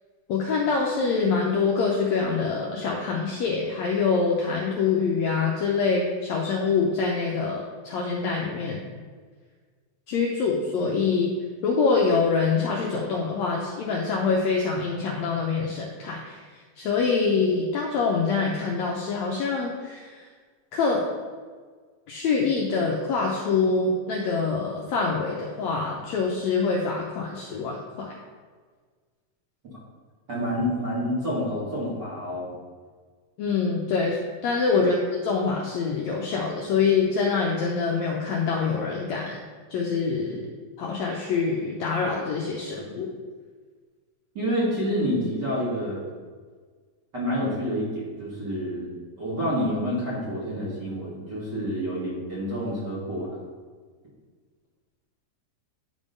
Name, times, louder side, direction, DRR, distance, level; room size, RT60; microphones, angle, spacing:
voice 1, 0.3-8.8 10.1-11.3 11.6-16.4 16.8-20.3 20.7-21.0 22.1-28.1 33.4-34.2 34.4-39.4 39.7-40.4 40.8-43.1, left 4 dB, 90° left, -2 dB, 1.5 m, -25 dB
voice 2, 30.3-32.5 44.3-46.0 47.1-53.3, equal, 35° right, -8 dB, 2.1 m, -28 dB
9.9 x 3.6 x 5.3 m, 1.5 s
omnidirectional pair, 4.2 m